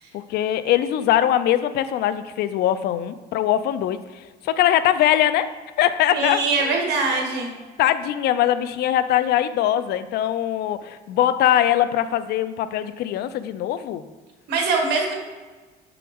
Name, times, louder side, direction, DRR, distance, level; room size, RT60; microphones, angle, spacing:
voice 1, 0.1-5.5 5.8-6.8 7.2-7.3 7.8-14.0, left 11 dB, 70° left, 12 dB, 0.4 m, -22 dB
voice 2, 6.1-7.5 14.5-15.1, right 3 dB, 75° right, 2 dB, 1.3 m, -22 dB
6.8 x 4.6 x 3.6 m, 1.3 s
cardioid pair, 110°, 17 cm